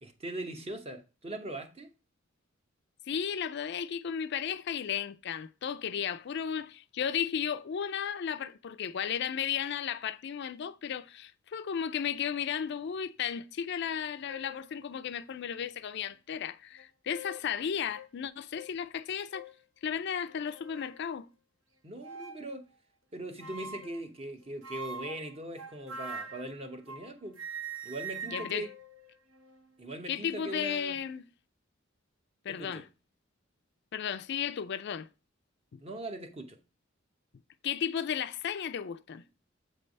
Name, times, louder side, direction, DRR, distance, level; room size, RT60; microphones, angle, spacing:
voice 1, 0.0-1.9 21.8-22.6 23.1-27.4 27.8-28.7 29.8-31.0 32.6-32.8 35.8-36.6, right 1 dB, 30° right, 0.9 m, -40 dB
voice 2, 3.1-19.5 19.8-21.3 28.3-28.7 30.1-31.2 32.4-32.9 33.9-35.1 35.7-35.8 37.6-39.2, left 8 dB, 60° left, 0.4 m, -34 dB
sound 1, 13.9-14.0 14.3-14.7 15.4-15.5 16.8-17.5 17.9-18.1 18.5-18.7 19.3-19.6 20.3-21.0 22.0-22.5 23.4-24.0 24.6-27.1 27.4-29.7, right 3 dB, 80° right, 0.9 m, -43 dB
7.7 x 3.3 x 5.2 m
head